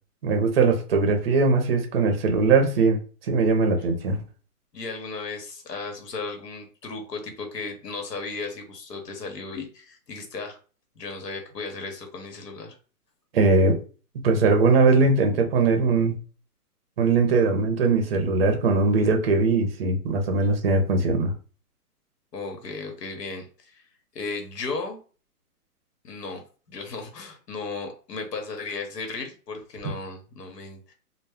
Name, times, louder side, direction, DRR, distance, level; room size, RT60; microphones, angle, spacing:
voice 1, 0.2-3.0 3.3-4.2 13.3-13.8 14.2-16.2 17.0-21.3, right 3 dB, 40° right, 5 dB, 0.5 m, -20 dB
voice 2, 4.7-10.6 11.0-12.8 22.3-23.8 24.1-25.0 26.0-26.4 26.7-30.9, left 3 dB, 90° left, 4 dB, 1.0 m, -35 dB
2.1 x 2.0 x 3.4 m, 0.37 s
hypercardioid pair, 150°, 47 cm